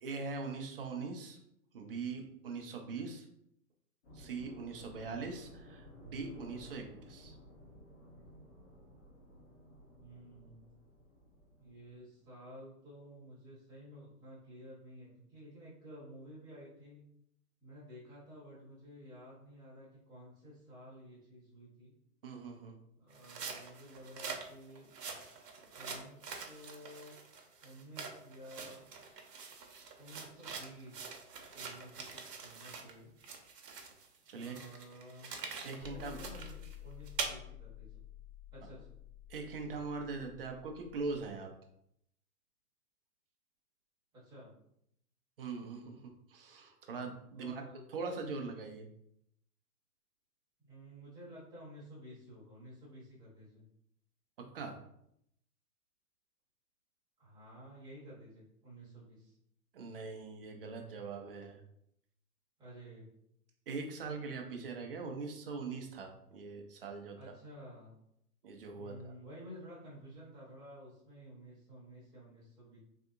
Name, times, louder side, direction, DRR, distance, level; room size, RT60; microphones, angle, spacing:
voice 1, 0.0-1.4 1.7-3.3 4.1-7.4 22.2-22.8 34.3-34.6 35.6-36.2 39.3-41.5 45.4-47.6 47.9-48.9 54.4-54.8 59.7-61.6 63.7-67.2 68.4-69.1, right 4 dB, 40° right, 3 dB, 0.4 m, -42 dB
sound 1, 4.0-12.3, left 1 dB, 40° left, 1.2 m, -56 dB
voice 2, 10.0-10.7 11.6-17.1 17.6-21.9 23.0-24.9 25.7-27.2 27.6-28.9 30.0-31.2 31.5-33.2 34.3-35.3 35.8-38.1 38.5-39.0 44.1-44.5 47.3-47.8 50.6-53.6 57.2-59.3 62.6-63.1 67.2-68.0 68.7-72.8, equal, 10° right, -8 dB, 1.0 m, -52 dB
sound 2, 23.1-32.9 33.2-37.3, right 5 dB, 80° right, 0.8 m, -45 dB
sound 3, 35.8-41.3, left 11 dB, 65° left, 0.7 m, -51 dB
3.4 x 2.7 x 2.4 m, 0.74 s
hypercardioid pair, 140°, 47 cm